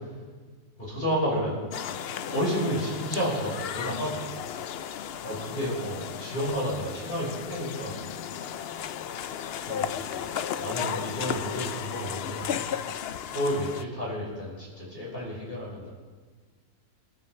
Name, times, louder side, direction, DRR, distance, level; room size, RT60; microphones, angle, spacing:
voice 1, 0.8-1.6 2.2-4.4 5.2-8.0 9.6-12.7 13.2-15.9, equal, 35° left, -7 dB, 5.5 m, -31 dB
sound 1, 1.7-13.8, left 9 dB, 85° left, 0.5 m, -35 dB
28.0 x 10.5 x 3.2 m, 1.4 s
omnidirectional pair, 1.7 m